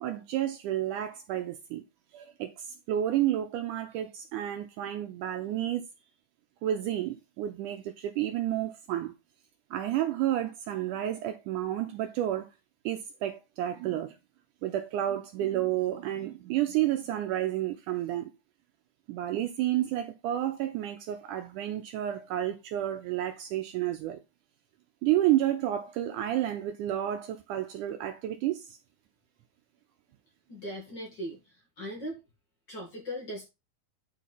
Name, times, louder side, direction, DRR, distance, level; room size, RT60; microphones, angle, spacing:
voice 1, 0.0-1.8 2.1-5.9 6.6-9.1 9.7-12.5 12.9-14.2 14.6-18.3 19.1-24.2 25.0-28.8, right 12 dB, 80° right, 1.9 m, -30 dB
voice 2, 30.5-32.2 32.7-33.5, equal, 40° left, 1.9 m, -39 dB
9.2 x 4.3 x 4.1 m
omnidirectional pair, 4.1 m